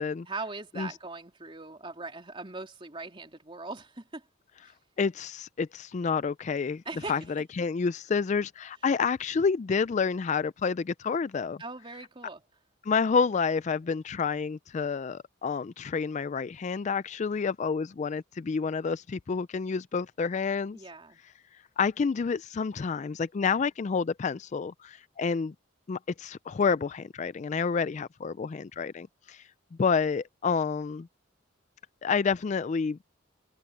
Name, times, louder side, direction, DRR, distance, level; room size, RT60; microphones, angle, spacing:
voice 1, 0.2-4.2 4.6-4.7 6.8-7.2 11.6-12.4 20.7-21.2, right 3 dB, 25° right, 3.3 m, -40 dB
voice 2, 5.0-6.8 7.1-11.6 12.9-20.8 21.8-25.5 25.9-29.5 29.8-31.1 32.0-33.0, left 5 dB, 35° left, 0.3 m, -29 dB
head